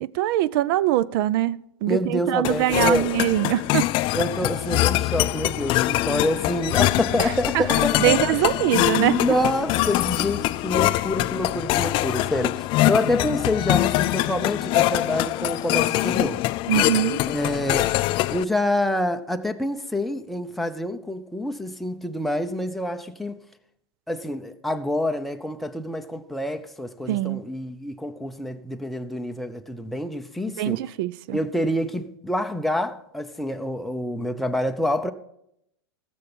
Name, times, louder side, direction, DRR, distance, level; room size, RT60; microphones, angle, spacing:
voice 1, 0.0-3.9 7.2-7.6 8.0-9.2 16.7-17.2 27.1-27.4 30.6-31.4, right 14 dB, 55° right, 0.5 m, -23 dB
voice 2, 1.9-3.1 4.1-8.4 8.9-16.4 17.3-18.0 18.3-23.4 24.1-30.8 31.3-35.1, left 1 dB, ahead, 0.7 m, -27 dB
sound 1, 2.4-18.4, left 17 dB, 40° left, 0.3 m, -23 dB
15.0 x 6.9 x 5.4 m
hypercardioid pair, 115°, 14 cm